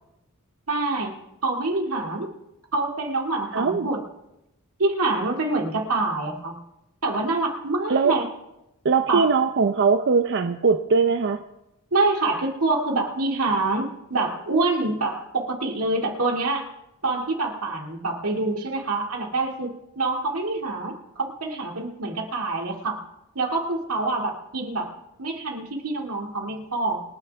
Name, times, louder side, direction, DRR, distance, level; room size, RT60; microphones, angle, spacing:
voice 1, 0.7-1.1 1.4-2.3 2.7-4.0 4.8-6.5 7.0-8.3 9.1-9.2 11.9-16.7 17.0-23.0 23.4-24.9 25.2-27.0, right 2 dB, 85° right, 1 dB, 2.2 m, -26 dB
voice 2, 3.5-3.9 7.9-8.1 8.8-11.4, right 5 dB, 55° right, 7 dB, 0.6 m, -21 dB
27.0 x 9.2 x 3.4 m, 0.92 s
head